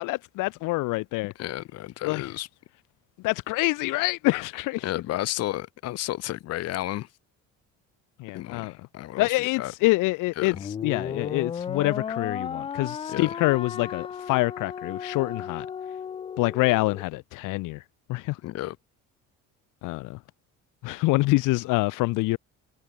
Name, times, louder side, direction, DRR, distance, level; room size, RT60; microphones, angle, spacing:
voice 1, 0.0-1.3 2.0-2.3 3.2-4.8 8.2-8.7 9.2-10.6 10.8-15.7 16.4-17.8 18.1-18.4 19.8-20.2 20.8-22.4, left 21 dB, 85° left, 1.0 m, -26 dB
voice 2, 1.4-2.5 4.8-7.1 8.3-9.7 10.4-10.5 13.1-13.4 18.4-18.8, left 15 dB, 55° left, 1.7 m, -32 dB
sound 1, 10.5-17.1, left 7 dB, 20° left, 0.4 m, -34 dB
cardioid pair, 180°, 31 cm